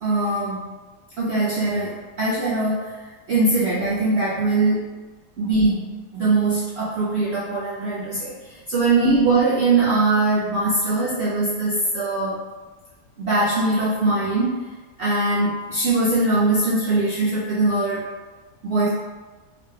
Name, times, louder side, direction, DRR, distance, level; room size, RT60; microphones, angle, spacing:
voice 1, 0.0-0.7 1.2-3.0 3.3-4.9 5.4-12.4 13.2-14.6 15.0-18.1 18.6-18.9, right 2 dB, 90° right, -7 dB, 0.5 m, -21 dB
4.0 x 3.2 x 2.2 m, 1.3 s
omnidirectional pair, 1.8 m